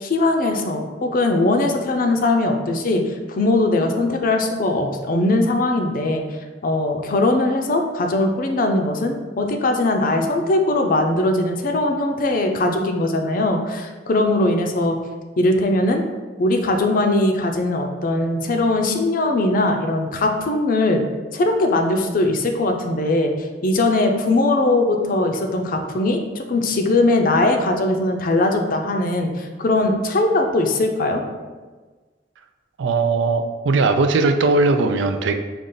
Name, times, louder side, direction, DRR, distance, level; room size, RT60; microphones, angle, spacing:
voice 1, 0.0-6.2 6.6-15.0 15.4-16.0 16.4-21.0 21.3-31.2, left 2 dB, 50° left, 4 dB, 0.5 m, -20 dB
voice 2, 32.8-35.3, right 3 dB, 90° right, 7 dB, 0.4 m, -19 dB
5.1 x 2.4 x 3.8 m, 1.3 s
head